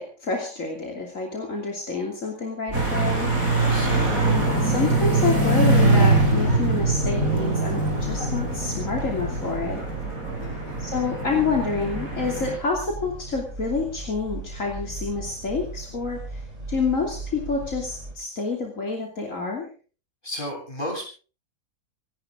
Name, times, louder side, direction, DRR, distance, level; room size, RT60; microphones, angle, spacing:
voice 1, 0.0-3.3 4.2-9.8 10.8-19.7, left 4 dB, 70° left, 0 dB, 3.3 m, -28 dB
sound 1, 2.7-18.1, right 3 dB, 60° right, 4.9 m, -37 dB
sound 2, 2.7-12.6, right 2 dB, 85° right, 5.5 m, -23 dB
voice 2, 3.6-4.0 10.4-10.7 20.2-21.0, left 1 dB, 35° left, 0 dB, 8.1 m, -33 dB
27.0 x 11.5 x 3.8 m, 0.37 s
omnidirectional pair, 1.4 m